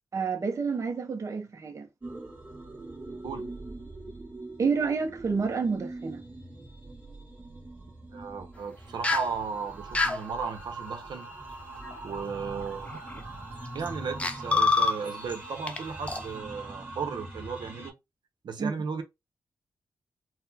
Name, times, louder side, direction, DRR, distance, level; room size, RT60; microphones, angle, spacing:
voice 1, 0.1-1.9 4.6-6.2 18.6-18.7, right 5 dB, 40° right, 0.6 m, -29 dB
sound 1, 2.0-17.9, right 2 dB, 20° right, 1.7 m, -42 dB
voice 2, 8.1-11.3 12.0-13.2 13.7-17.9 18.4-19.0, right 5 dB, 75° right, 0.7 m, -35 dB
sound 2, 9.0-9.3 9.9-10.2 11.9-12.0 12.9-13.2 13.9-14.0 14.2-15.3 15.7-15.8 16.1-16.2, left 3 dB, 15° left, 0.5 m, -25 dB
4.0 x 2.1 x 2.7 m
cardioid pair, 95°, 8 cm